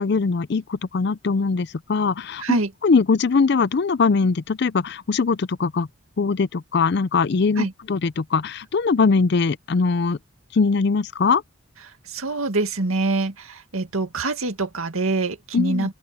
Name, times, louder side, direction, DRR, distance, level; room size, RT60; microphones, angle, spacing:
voice 1, 0.0-2.4 2.8-5.9 6.2-10.2 10.5-11.4 15.5-15.9, left 4 dB, 55° left, 0.5 m, -21 dB
voice 2, 2.4-2.7 7.6-7.7 12.1-16.0, right 2 dB, 90° right, 2.1 m, -25 dB
open air
head